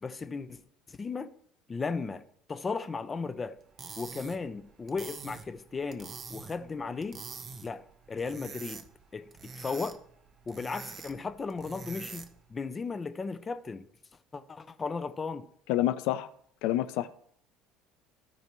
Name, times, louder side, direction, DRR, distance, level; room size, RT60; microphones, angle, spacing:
voice 1, 0.0-0.6 0.9-1.3 1.7-2.2 2.5-3.6 4.0-7.2 7.6-8.8 9.1-10.0 10.5-13.9 14.3-15.5, left 4 dB, 15° left, 0.5 m, -36 dB
sound 1, 3.6-12.5, right 5 dB, 25° right, 0.8 m, -46 dB
voice 2, 15.7-16.3 16.6-17.1, left 13 dB, 65° left, 0.5 m, -28 dB
16.0 x 5.4 x 3.1 m
cardioid pair, 165°, 0 cm